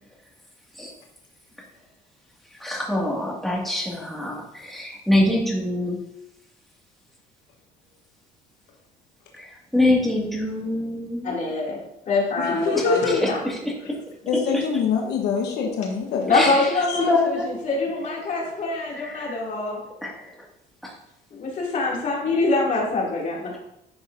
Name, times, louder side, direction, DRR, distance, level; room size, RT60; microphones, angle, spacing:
voice 1, 2.6-6.0 9.3-11.4 12.7-14.0 16.3-17.5 18.9-19.4 20.0-20.4 20.8-20.9, left 1 dB, ahead, -3 dB, 2.2 m, -25 dB
voice 2, 11.2-11.8 12.1-13.4 16.3-17.4 17.6-19.8 21.3-23.5, left 3 dB, 45° left, -3 dB, 2.7 m, -24 dB
voice 3, 12.4-13.3 14.3-16.3 16.9-17.0, left 5 dB, 80° left, 1 dB, 1.2 m, -24 dB
10.5 x 6.1 x 2.7 m, 0.81 s
cardioid pair, 110°, 17 cm